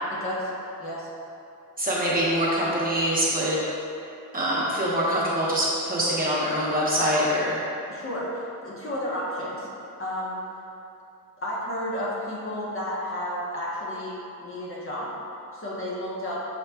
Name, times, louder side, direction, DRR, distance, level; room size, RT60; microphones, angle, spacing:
voice 1, 0.1-0.5 0.8-1.1 7.9-9.7 10.0-10.4 11.4-15.1 15.5-16.4, left 1 dB, 35° left, -6 dB, 0.9 m, -32 dB
voice 2, 1.8-3.6 4.3-7.6, equal, 25° right, -7 dB, 0.9 m, -24 dB
6.6 x 2.3 x 3.3 m, 2.7 s
wide cardioid pair, 130°, 35 cm